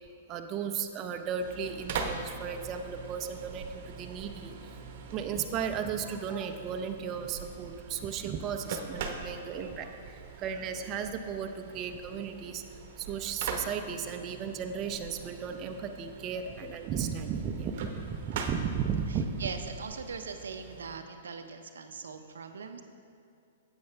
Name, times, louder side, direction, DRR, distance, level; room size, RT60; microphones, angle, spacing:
voice 1, 0.3-4.7 5.1-12.6 13.0-19.4, right 7 dB, 35° right, 5 dB, 0.6 m, -35 dB
sound 1, 1.4-21.0, right 5 dB, 55° right, 0.9 m, -42 dB
voice 2, 19.1-22.8, right 5 dB, 85° right, 7 dB, 0.6 m, -41 dB
9.4 x 7.9 x 3.4 m, 2.5 s
hypercardioid pair, 125°, 0 cm